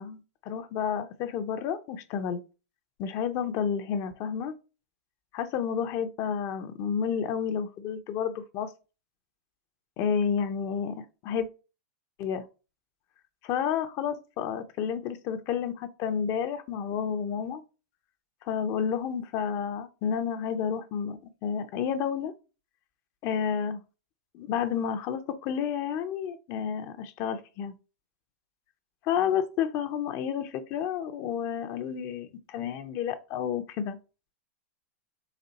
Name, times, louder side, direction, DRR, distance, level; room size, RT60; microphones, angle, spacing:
voice 1, 0.0-2.4 3.0-4.5 5.3-8.7 10.0-11.5 12.2-12.4 13.4-17.6 18.5-22.3 23.2-23.8 24.3-27.7 29.0-34.0, left 7 dB, 40° left, 0.6 m, -30 dB
4.2 x 3.1 x 4.0 m
hypercardioid pair, 130°, 8 cm